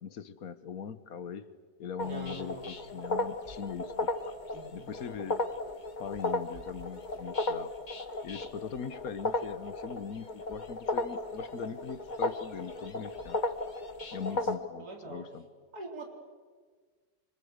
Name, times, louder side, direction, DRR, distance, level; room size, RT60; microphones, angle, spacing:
voice 1, 0.0-1.5 1.8-4.1 4.7-5.4 6.0-7.7 8.2-13.4 14.1-15.4, left 7 dB, 65° left, 13 dB, 1.5 m, -41 dB
sound 1, 2.0-14.5, left 2 dB, 30° left, 1.2 m, -35 dB
voice 2, 2.0-2.6 4.5-4.9 14.3-15.3 15.7-16.0, right 1 dB, 75° right, 1 dB, 4.5 m, -44 dB
26.0 x 25.0 x 8.2 m, 1.5 s
omnidirectional pair, 1.6 m